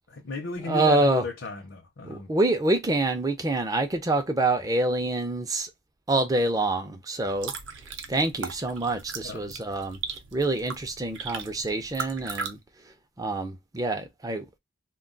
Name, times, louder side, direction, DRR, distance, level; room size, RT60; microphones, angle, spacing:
voice 1, 0.1-2.3 9.2-9.4, left 3 dB, 75° left, 0.6 m, -35 dB
voice 2, 0.7-1.2 2.0-5.7 6.1-7.5 8.1-10.0 10.3-12.6 13.2-14.6, right 2 dB, 20° right, 0.4 m, -26 dB
sound 1, 7.2-12.5, right 5 dB, 80° right, 0.6 m, -38 dB
2.2 x 2.2 x 3.7 m
head